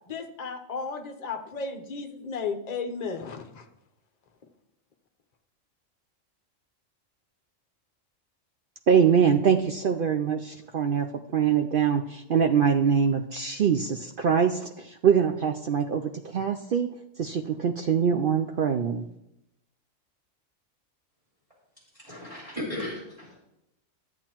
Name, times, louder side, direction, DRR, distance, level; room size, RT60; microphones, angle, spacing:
voice 1, 0.1-3.6, left 5 dB, 35° left, 5 dB, 0.8 m, -34 dB
voice 2, 8.9-11.1 11.3-16.9 17.2-19.0, right 7 dB, 65° right, 5 dB, 0.5 m, -23 dB
voice 3, 22.0-23.4, left 1 dB, 25° right, -5 dB, 2.8 m, -36 dB
13.0 x 8.3 x 2.9 m, 0.87 s
omnidirectional pair, 1.4 m